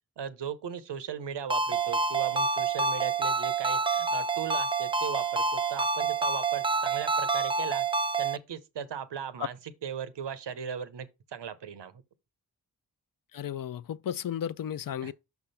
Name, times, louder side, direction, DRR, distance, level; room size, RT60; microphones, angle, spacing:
voice 1, 0.2-7.9 8.2-9.6 9.8-12.0 15.0-15.1, right 7 dB, 90° right, 0.8 m, -38 dB
Ringtone, 1.5-8.4, right 4 dB, 15° right, 0.4 m, -28 dB
voice 2, 13.3-15.1, left 9 dB, 55° left, 0.5 m, -34 dB
5.9 x 3.5 x 5.5 m
cardioid pair, 40°, 41 cm